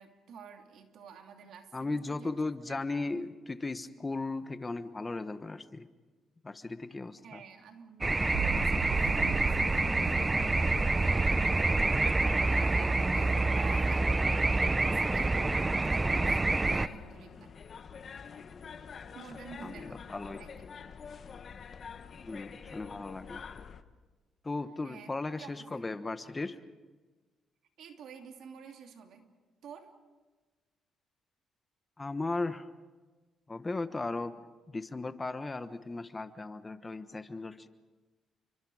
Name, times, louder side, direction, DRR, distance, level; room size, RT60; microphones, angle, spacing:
voice 1, 0.0-2.3 2.7-2.8 7.2-14.1 14.5-17.5 19.1-20.0 20.4-20.7 24.8-25.7 27.8-29.3 29.6-29.9, right 7 dB, 75° right, 4 dB, 2.9 m, -49 dB
voice 2, 1.7-5.9 6.4-7.4 19.6-20.4 22.2-23.4 24.4-26.6 32.0-32.7 33.5-37.7, left 3 dB, 25° left, 11 dB, 1.2 m, -36 dB
sound 1, 8.0-16.9, right 2 dB, 20° right, 0.7 m, -27 dB
sound 2, 8.3-14.4, right 13 dB, 90° right, 0.6 m, -40 dB
sound 3, 16.5-23.8, left 6 dB, 50° left, 1.3 m, -46 dB
30.0 x 24.5 x 5.0 m, 1.3 s
cardioid pair, 90°, 0 cm